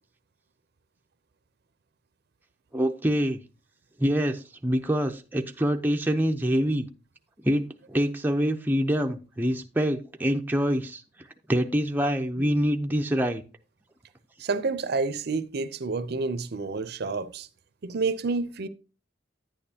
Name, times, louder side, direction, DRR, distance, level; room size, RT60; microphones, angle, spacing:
voice 1, 2.7-3.4 4.0-6.9 7.4-11.0 11.5-13.4, equal, 10° right, 0.6 m, -25 dB
voice 2, 14.4-17.5 17.8-18.7, right 4 dB, 60° right, 0.6 m, -29 dB
10.5 x 8.7 x 2.8 m
head